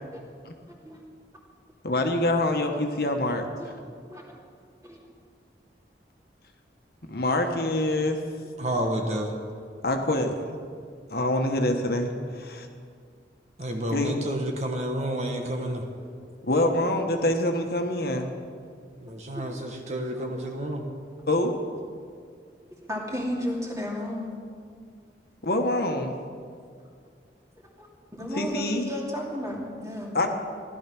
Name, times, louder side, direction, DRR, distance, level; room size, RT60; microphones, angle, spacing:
voice 1, 0.7-1.0 3.6-3.8 4.1-4.3 4.8-5.0 15.6-16.1 19.4-19.5 20.1-20.4 22.8-24.3 27.8-27.9 28.2-30.1, equal, 20° right, -2 dB, 2.6 m, -34 dB
voice 2, 1.8-3.5 7.1-8.2 9.8-10.6 11.1-12.7 13.9-14.1 16.5-18.3 21.3-21.5 25.4-26.1 28.4-28.8 30.1-30.3, left 1 dB, 60° left, 4 dB, 1.3 m, -25 dB
voice 3, 8.6-9.3 13.6-15.8 19.0-20.8, right 1 dB, 40° right, 2 dB, 1.3 m, -30 dB
16.0 x 11.5 x 6.1 m, 2.2 s
head